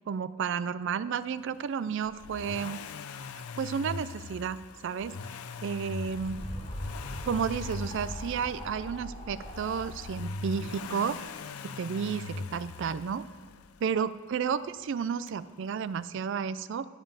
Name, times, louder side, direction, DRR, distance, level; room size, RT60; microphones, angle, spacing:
voice 1, 0.1-2.8 3.6-4.6 4.8-5.1 5.6-6.4 7.3-11.2 11.6-13.2 13.8-16.9, right 6 dB, 60° right, 15 dB, 0.3 m, -32 dB
Accelerating revving vroom, 2.0-14.0 15.3-15.4, left 4 dB, 85° left, 0.5 m, -41 dB
sound 1, 6.1-11.3, equal, 25° left, 1.1 m, -41 dB
11.5 x 5.3 x 7.2 m, 1.5 s
head